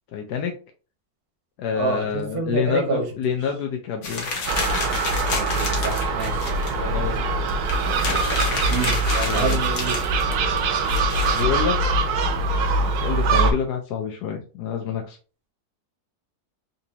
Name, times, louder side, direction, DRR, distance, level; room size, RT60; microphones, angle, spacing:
voice 1, 0.1-0.6 1.6-4.3 6.7-7.6 9.1-9.7 11.2-11.8 12.8-15.2, left 7 dB, 85° left, 3 dB, 1.2 m, -28 dB
voice 2, 1.8-3.0 5.3-6.4 8.5-9.0 9.3-10.0, right 3 dB, 45° right, 2 dB, 0.9 m, -27 dB
sound 1, 4.0-6.7 7.2-7.3 7.5-11.4, left 3 dB, 55° left, 1.1 m, -30 dB
Gull seagull, 4.5-13.5, right 3 dB, 75° right, 1.1 m, -23 dB
4.0 x 2.7 x 2.7 m, 0.37 s
omnidirectional pair, 1.7 m